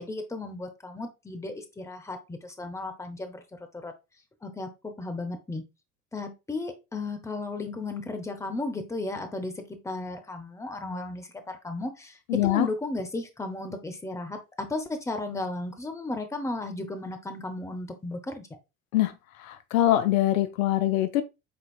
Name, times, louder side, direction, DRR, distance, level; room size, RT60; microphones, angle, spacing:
voice 1, 0.0-3.4 3.8-3.9 4.4-5.6 6.1-12.1 12.4-18.5, left 2 dB, 5° left, 0.8 m, -34 dB
voice 2, 12.3-12.7 18.9-19.1 19.4-21.2, left 13 dB, 70° left, 0.6 m, -23 dB
5.5 x 3.9 x 2.3 m
figure-of-eight pair, 65°, 44 cm